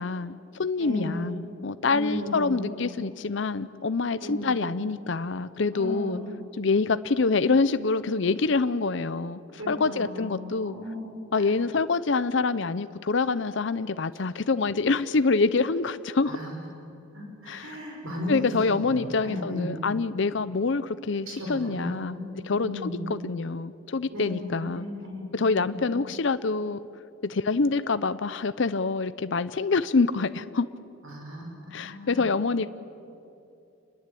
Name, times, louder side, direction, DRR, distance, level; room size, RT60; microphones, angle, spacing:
voice 1, 0.0-6.2 6.6-9.4 9.7-10.7 11.3-16.4 17.5-17.8 18.3-22.2 22.5-24.9 25.3-26.8 27.2-30.7 31.7-32.7, left 4 dB, 60° left, 13 dB, 0.6 m, -26 dB
voice 2, 0.8-1.2 1.8-2.7 4.2-4.6 5.7-6.3 9.5-11.5 16.3-16.6 17.1-19.7 21.4-23.0 24.1-25.8 31.0-32.2, left 1 dB, 75° right, 0 dB, 5.8 m, -36 dB
28.0 x 21.0 x 8.5 m, 2.7 s
head